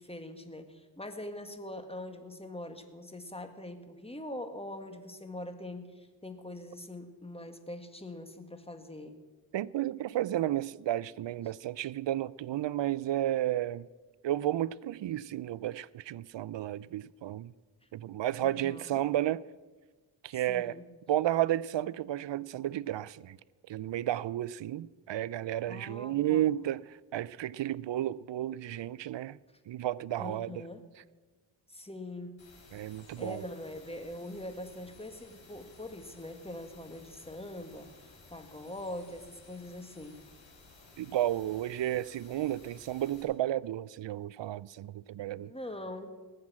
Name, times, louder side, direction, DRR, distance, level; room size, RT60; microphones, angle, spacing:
voice 1, 0.0-9.2 18.4-19.0 20.3-20.8 25.7-26.5 30.2-30.8 31.7-32.4 33.2-37.9 38.3-40.2 45.4-46.2, left 1 dB, 10° left, 1.8 m, -43 dB
voice 2, 9.5-13.9 14.2-17.5 17.9-19.4 20.2-20.8 21.1-23.4 23.7-29.4 29.7-30.5 32.7-33.4 41.0-45.5, right 13 dB, 65° right, 0.5 m, -32 dB
sound 1, 32.4-43.2, left 3 dB, 80° left, 4.6 m, -56 dB
19.0 x 7.8 x 7.3 m
cardioid pair, 50°, 47 cm